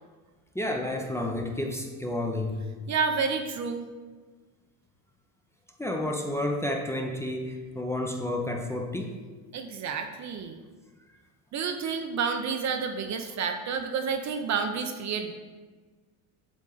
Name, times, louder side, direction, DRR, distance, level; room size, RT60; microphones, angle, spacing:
voice 1, 0.5-2.6 5.8-9.2, left 1 dB, 5° left, 1 dB, 0.7 m, -30 dB
voice 2, 2.9-3.9 9.5-10.6 11.5-15.3, right 5 dB, 40° right, 6 dB, 0.7 m, -30 dB
7.5 x 3.6 x 3.9 m, 1.4 s
supercardioid pair, 90°, 42 cm